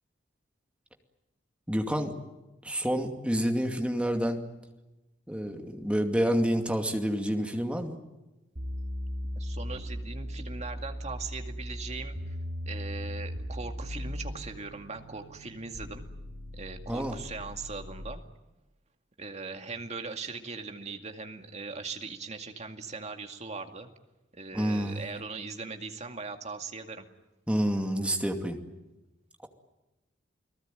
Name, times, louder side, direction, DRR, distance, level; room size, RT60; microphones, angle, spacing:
voice 1, 1.7-2.2 2.6-4.4 5.3-8.0 16.9-17.2 24.5-25.0 27.5-28.6, equal, 5° right, 4 dB, 2.4 m, -28 dB
sound 1, 8.6-18.1, equal, 60° right, 4.3 m, -38 dB
voice 2, 9.3-12.4 12.7-16.1 16.5-18.2 19.2-23.9 24.3-27.1, right 4 dB, 35° right, 5 dB, 2.3 m, -40 dB
29.5 x 19.0 x 9.1 m, 1.0 s
head